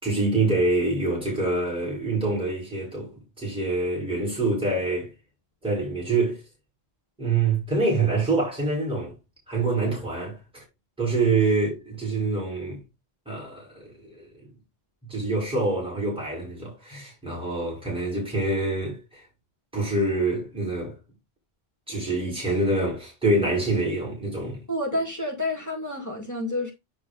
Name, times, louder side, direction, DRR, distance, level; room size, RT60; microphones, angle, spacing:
voice 1, 0.0-5.1 5.6-6.4 7.2-9.1 9.5-10.6 11.0-12.8 13.3-14.3 15.1-19.2 19.7-20.9 21.9-24.6, right 3 dB, 5° right, 4.3 m, -26 dB
voice 2, 24.7-26.7, left 1 dB, 15° left, 2.2 m, -29 dB
9.8 x 3.7 x 3.9 m
omnidirectional pair, 1.1 m